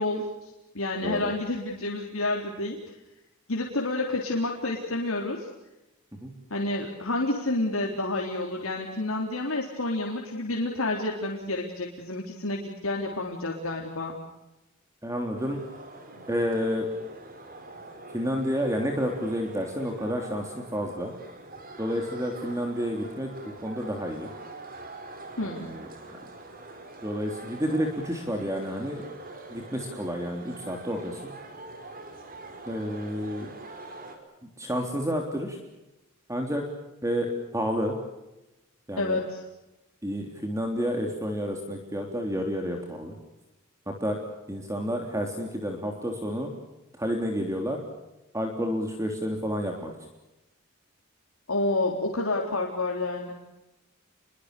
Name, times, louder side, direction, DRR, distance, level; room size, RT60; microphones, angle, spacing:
voice 1, 0.0-3.0 3.5-5.5 6.5-14.2 25.4-25.7 39.0-39.4 51.5-53.3, left 2 dB, 75° left, 0 dB, 3.8 m, -29 dB
voice 2, 15.0-15.6 16.3-16.9 18.1-21.1 21.8-23.3 23.6-24.3 25.4-26.2 27.0-29.0 29.5-31.2 32.7-33.5 34.6-35.6 36.3-36.6 37.0-37.9 38.9-39.2 40.0-43.1 43.9-44.2 44.5-46.5 47.0-47.8 48.3-49.9, equal, 15° right, 3 dB, 3.3 m, -30 dB
sound 1, 15.4-34.2, right 2 dB, 45° right, 5.2 m, -44 dB
29.5 x 23.5 x 6.8 m, 0.97 s
head